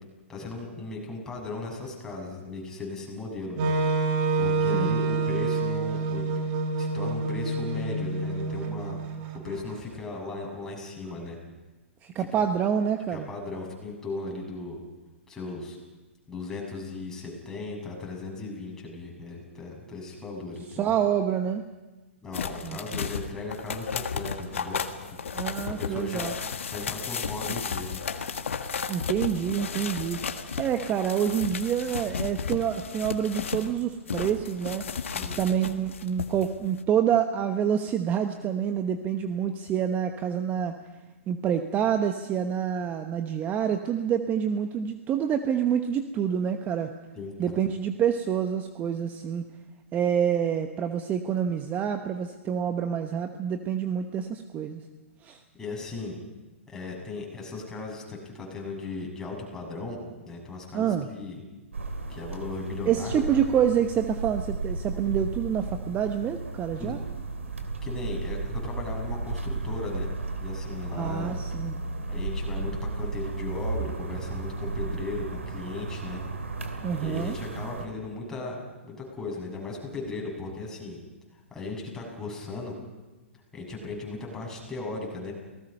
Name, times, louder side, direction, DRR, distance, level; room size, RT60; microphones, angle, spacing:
voice 1, 0.3-3.7 4.0-6.2 6.8-9.0 9.4-11.4 12.2-12.3 13.1-14.8 15.3-15.8 16.3-20.9 22.2-24.8 25.8-26.3 26.7-28.0 35.1-35.4 47.1-47.6 55.6-56.2 56.7-60.0 60.3-61.4 62.1-63.4 66.8-67.0 67.8-70.1 70.4-71.3 72.1-76.2 77.0-81.0 81.5-82.7 83.5-85.3, left 3 dB, 10° left, -2 dB, 6.9 m, -37 dB
Wind instrument woodwind instrument, 3.6-9.6, right 3 dB, 40° right, 2.6 m, -27 dB
voice 2, 12.0-13.3 20.7-21.6 22.6-23.1 25.3-26.3 28.9-30.2 30.6-34.8 35.4-40.7 41.3-46.9 47.4-49.4 49.9-54.8 55.2-55.4 60.7-61.1 62.9-67.0 70.9-71.8 76.8-77.3, right 8 dB, 25° right, 7 dB, 1.1 m, -27 dB
sound 1, 22.3-33.7 34.1-36.5 36.8-36.9, left 6 dB, 75° left, 1.7 m, -33 dB
sound 2, 61.7-77.9, right 3 dB, 85° right, 2.7 m, -34 dB
29.0 x 19.0 x 5.5 m, 1.2 s
hypercardioid pair, 120°, 7 cm